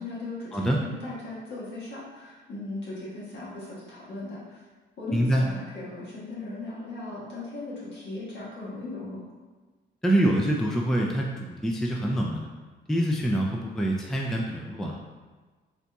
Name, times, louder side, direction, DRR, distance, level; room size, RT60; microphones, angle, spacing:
voice 1, 0.0-4.6 5.0-9.2, left 2 dB, 65° left, -8 dB, 1.4 m, -38 dB
voice 2, 5.1-5.4 10.0-12.5 12.9-15.0, right 1 dB, ahead, -1 dB, 0.3 m, -25 dB
4.0 x 2.6 x 2.2 m, 1.3 s
cardioid pair, 90°, 20 cm